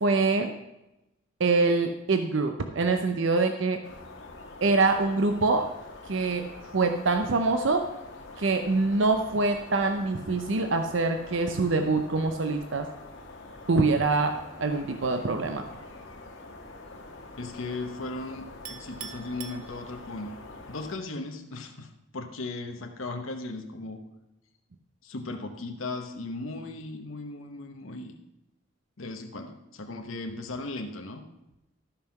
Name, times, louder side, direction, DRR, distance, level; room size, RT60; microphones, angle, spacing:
voice 1, 0.0-0.5 1.4-3.8 4.6-5.7 6.0-7.9 8.4-12.9 13.7-15.7, right 3 dB, 65° right, 6 dB, 0.7 m, -25 dB
sound 1, 3.8-21.0, left 2 dB, 60° left, 1.8 m, -45 dB
voice 2, 17.4-20.3 20.7-24.0 25.0-28.1 29.0-31.2, left 2 dB, 80° left, 4 dB, 1.0 m, -37 dB
Chink clink, 18.7-20.3, right 8 dB, 85° right, 1.0 m, -43 dB
13.5 x 5.8 x 5.8 m, 0.94 s
head